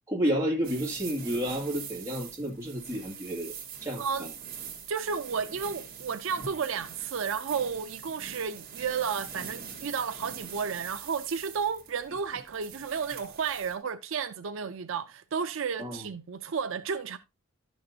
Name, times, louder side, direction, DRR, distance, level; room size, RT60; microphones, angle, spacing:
voice 1, 0.1-3.5 3.8-4.0 15.8-16.1, equal, 15° right, 2.2 m, -30 dB
sound 1, 0.6-13.8, right 7 dB, 45° right, 2.0 m, -43 dB
voice 2, 4.0-4.3 4.9-17.2, right 6 dB, 70° right, 0.5 m, -32 dB
11.5 x 6.4 x 2.8 m
head